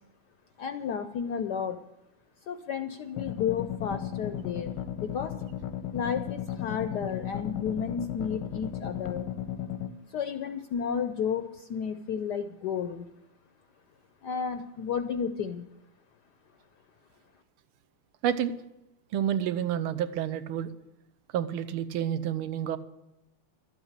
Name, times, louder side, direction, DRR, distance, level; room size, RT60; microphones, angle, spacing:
voice 1, 0.6-1.8 2.5-5.3 5.9-9.3 10.1-13.0 14.2-15.6, left 7 dB, 70° left, 8 dB, 1.0 m, -32 dB
sound 1, 3.2-9.9, left 10 dB, 90° left, 1.7 m, -35 dB
voice 2, 19.1-20.7 21.3-22.8, right 10 dB, 80° right, 12 dB, 1.6 m, -29 dB
12.5 x 8.1 x 8.0 m, 0.90 s
omnidirectional pair, 2.4 m